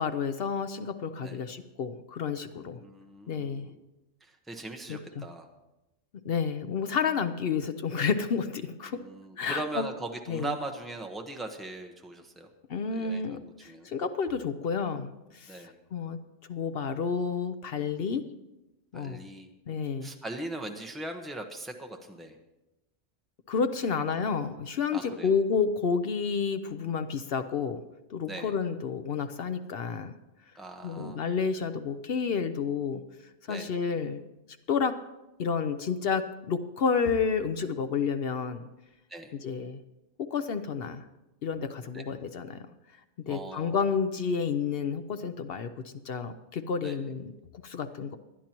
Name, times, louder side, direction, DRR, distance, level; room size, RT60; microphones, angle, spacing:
voice 1, 0.0-2.8 3.3-3.7 4.9-5.3 6.2-9.0 9.4-9.8 10.3-10.5 12.7-15.6 15.9-16.2 16.5-18.2 18.9-19.2 19.7-20.1 23.5-27.8 28.1-30.1 30.8-33.0 33.5-34.2 34.7-35.0 35.4-38.7 39.3-39.8 40.2-41.0 41.4-42.6 43.3-47.3 47.6-48.2, left 6 dB, 55° left, 9 dB, 0.8 m, -30 dB
voice 2, 2.8-3.8 4.2-5.5 8.8-12.5 12.9-13.9 15.5-15.8 18.9-19.5 20.0-22.4 24.9-25.3 28.3-28.5 30.5-31.2 33.5-33.7 39.1-39.3 41.9-42.0 43.3-43.9 46.8-47.0, right 2 dB, ahead, 3 dB, 0.9 m, -40 dB
20.0 x 12.0 x 3.0 m, 0.98 s
omnidirectional pair, 1.3 m